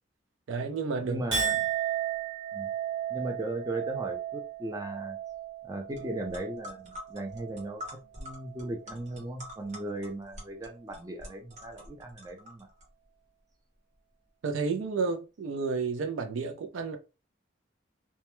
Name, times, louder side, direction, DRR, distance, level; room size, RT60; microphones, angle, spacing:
voice 1, 0.5-1.2 14.4-17.0, right 4 dB, 85° right, 0.4 m, -31 dB
voice 2, 1.0-1.6 2.5-2.7 3.1-5.2 5.6-7.8 8.2-12.7, right 1 dB, 20° right, 0.4 m, -37 dB
Chink clink, 1.3-7.9 8.2-8.8, right 9 dB, 60° right, 1.1 m, -35 dB
sound 1, 6.0-6.1 6.3-12.8, left 1 dB, 35° right, 0.9 m, -46 dB
2.2 x 2.1 x 2.9 m
head